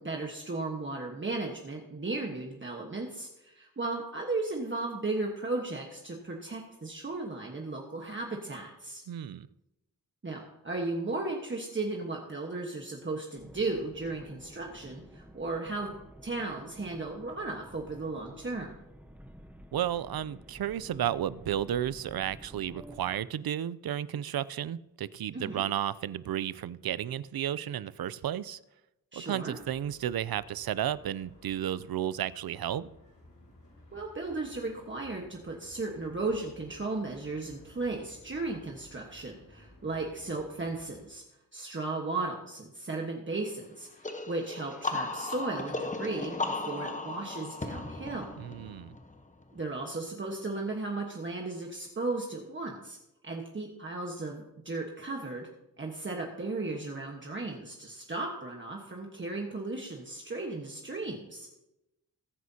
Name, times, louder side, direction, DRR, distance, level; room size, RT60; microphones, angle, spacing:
voice 1, 0.0-9.0 10.2-15.9 16.2-18.8 25.3-25.6 29.1-29.6 33.9-41.2 41.5-48.3 49.5-53.0 53.2-55.5 55.8-61.5, right 3 dB, 35° right, 1.3 m, -35 dB
voice 2, 9.1-9.5 19.7-28.6 29.1-32.9 48.4-49.0, right 10 dB, 90° right, 0.5 m, -33 dB
sound 1, 13.4-23.2, equal, 5° right, 1.0 m, -51 dB
sound 2, 29.5-41.0, left 1 dB, 60° left, 4.5 m, -57 dB
sound 3, 44.0-49.6, left 3 dB, 20° left, 1.0 m, -36 dB
21.0 x 9.4 x 2.8 m
wide cardioid pair, 135°, 35 cm